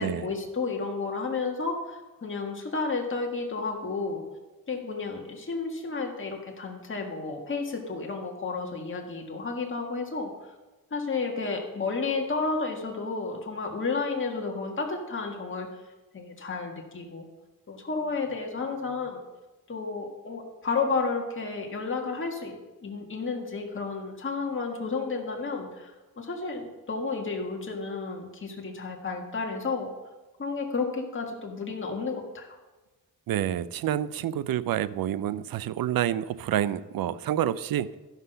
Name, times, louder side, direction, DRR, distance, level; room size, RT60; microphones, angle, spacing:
voice 1, 0.0-4.2 4.7-10.3 10.9-15.7 16.1-17.3 17.7-19.2 19.7-22.6 22.8-29.9 30.4-32.6, left 4 dB, 35° left, 1 dB, 1.8 m, -32 dB
voice 2, 33.3-38.0, right 11 dB, 75° right, 17 dB, 0.5 m, -28 dB
14.0 x 5.9 x 5.6 m, 1.1 s
cardioid pair, 70°, 35 cm